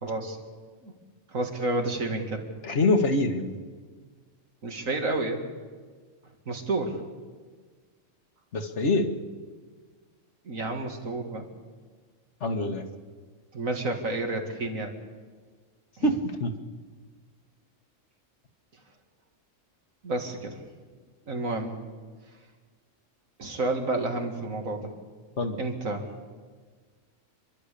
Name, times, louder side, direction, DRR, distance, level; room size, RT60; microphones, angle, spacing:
voice 1, 0.0-0.4 0.8-0.9 1.3-2.4 4.6-5.4 6.5-7.0 10.4-11.5 13.5-14.9 16.0-16.1 20.0-20.6 21.3-21.8 23.4-24.9 25.6-26.1, right 2 dB, 80° right, 3 dB, 2.6 m, -30 dB
voice 2, 2.6-3.6 8.5-9.1 12.4-12.8 16.0-16.5 25.4-25.6, left 2 dB, 60° left, 6 dB, 1.8 m, -25 dB
28.5 x 12.0 x 8.4 m, 1.5 s
omnidirectional pair, 1.4 m